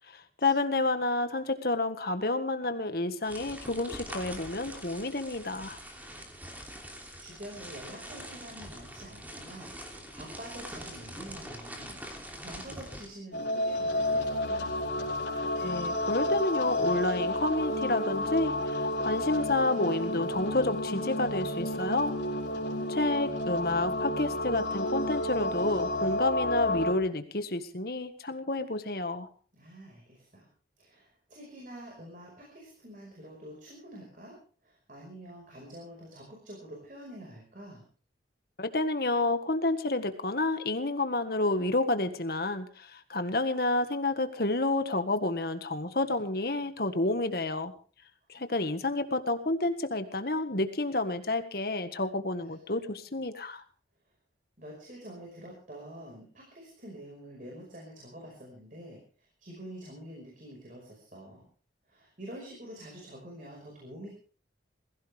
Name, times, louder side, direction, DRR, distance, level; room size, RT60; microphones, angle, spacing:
voice 1, 0.4-5.8 15.6-22.2 22.9-29.3 38.6-47.7 48.3-53.6, left 2 dB, 55° left, 9 dB, 1.7 m, -30 dB
sound 1, 3.2-13.1, equal, 10° right, 2.9 m, -44 dB
voice 2, 7.2-14.7 22.7-23.0 29.5-30.5 30.8-34.4 34.6-37.8 48.4-48.5 52.4-52.8 54.6-61.4 61.9-64.1, right 1 dB, 45° right, -1 dB, 5.3 m, -47 dB
sound 2, 13.3-26.9, left 1 dB, 80° left, 4.6 m, -31 dB
21.5 x 16.0 x 3.5 m, 0.40 s
head